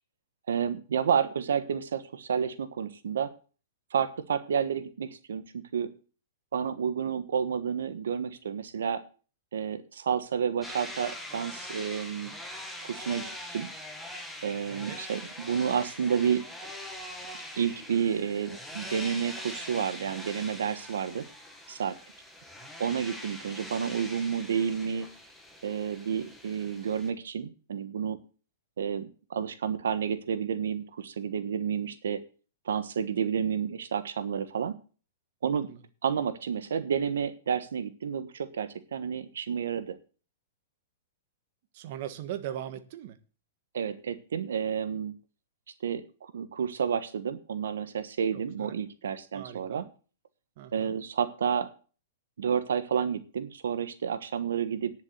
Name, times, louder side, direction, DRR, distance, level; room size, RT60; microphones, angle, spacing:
voice 1, 0.5-3.3 3.9-5.9 6.5-9.0 9.5-12.3 12.8-13.7 14.4-16.4 17.6-21.2 21.7-22.0 22.8-25.1 25.6-28.2 28.8-32.2 32.6-34.7 35.4-35.7 36.0-40.0 43.7-45.1 45.8-49.8 50.7-51.7 52.4-54.9, right 7 dB, 85° right, 1.3 m, -30 dB
sound 1, 10.6-27.1, left 1 dB, ahead, 1.9 m, -43 dB
voice 2, 14.7-15.0 35.7-35.8 41.7-43.2 48.3-48.8 49.3-49.9 50.6-51.0, right 11 dB, 50° right, 1.5 m, -40 dB
10.0 x 7.3 x 7.9 m
hypercardioid pair, 150°, 0 cm